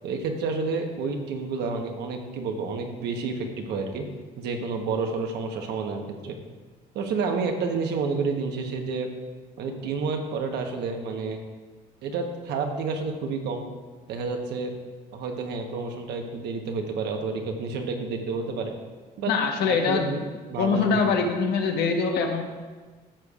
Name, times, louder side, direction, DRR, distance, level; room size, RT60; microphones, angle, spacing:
voice 1, 0.0-4.1 4.4-6.4 6.9-9.1 9.6-11.4 12.0-13.6 14.1-14.7 15.1-18.7 19.2-19.3 19.7-21.0, right 4 dB, 80° right, 3 dB, 1.1 m, -30 dB
voice 2, 19.3-20.2 20.6-22.4, left 5 dB, 75° left, 3 dB, 1.1 m, -23 dB
13.0 x 6.6 x 2.4 m, 1.4 s
cardioid pair, 110°, 17 cm